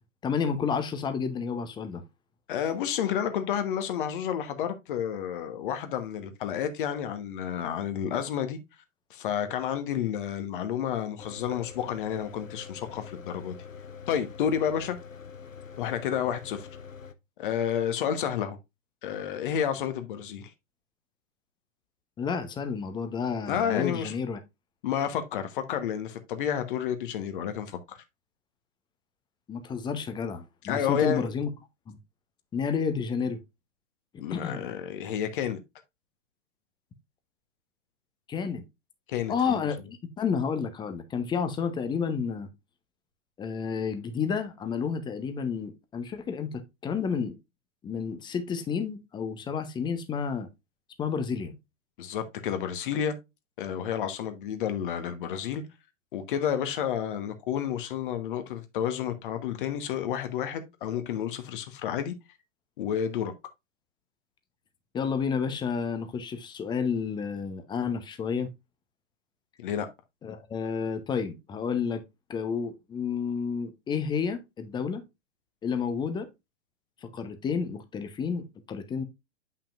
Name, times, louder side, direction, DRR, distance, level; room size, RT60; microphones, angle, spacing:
voice 1, 0.2-2.0 22.2-24.4 29.5-31.5 31.9-32.0 32.5-33.4 34.3-34.7 38.3-38.7 39.3-42.5 43.4-47.3 47.8-50.5 51.0-51.5 64.9-68.5 70.2-72.0 72.3-75.0 75.6-76.3 77.1-79.0, left 6 dB, 10° left, 0.8 m, -30 dB
voice 2, 2.5-8.6 9.1-13.5 14.1-15.0 15.8-16.7 17.4-18.6 19.0-20.5 23.5-24.1 24.8-28.0 30.6-31.2 34.2-35.6 39.1-39.6 52.0-53.1 53.6-55.6 56.1-62.1 62.8-63.3 69.6-69.9, left 9 dB, 40° left, 1.2 m, -30 dB
Mechanical fan, 11.2-17.1, left 6 dB, 85° left, 0.9 m, -45 dB
8.6 x 5.7 x 2.4 m
figure-of-eight pair, 105°, 38 cm